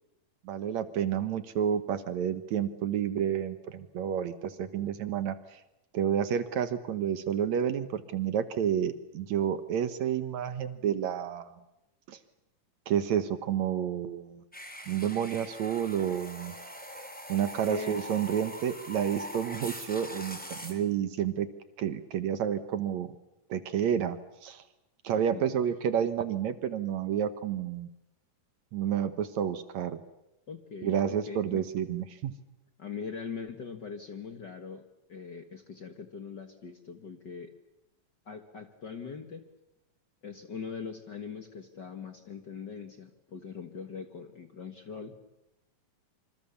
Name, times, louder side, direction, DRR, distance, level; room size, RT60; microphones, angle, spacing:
voice 1, 0.4-5.6 5.9-11.5 12.1-12.2 12.9-14.4 14.9-16.5 17.3-21.5 21.8-23.1 23.5-24.6 25.0-27.9 28.7-30.0 30.8-32.3, right 9 dB, 65° right, 12 dB, 2.2 m, -30 dB
sound 1, 14.5-20.7, equal, 5° left, 3.3 m, -42 dB
voice 2, 17.7-18.0 25.3-25.4 30.5-31.6 32.8-34.8 35.1-37.5 38.2-39.4 40.2-45.1, left 5 dB, 45° left, 6 dB, 1.6 m, -41 dB
26.5 x 26.0 x 7.1 m, 0.90 s
omnidirectional pair, 3.7 m